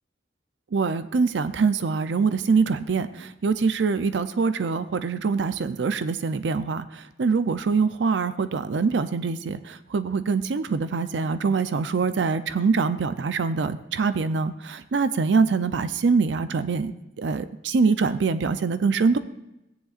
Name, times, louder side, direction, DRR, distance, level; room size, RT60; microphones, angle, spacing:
voice 1, 0.7-16.9 17.2-19.2, right 4 dB, 90° right, 12 dB, 0.5 m, -24 dB
15.5 x 9.8 x 2.5 m, 0.92 s
head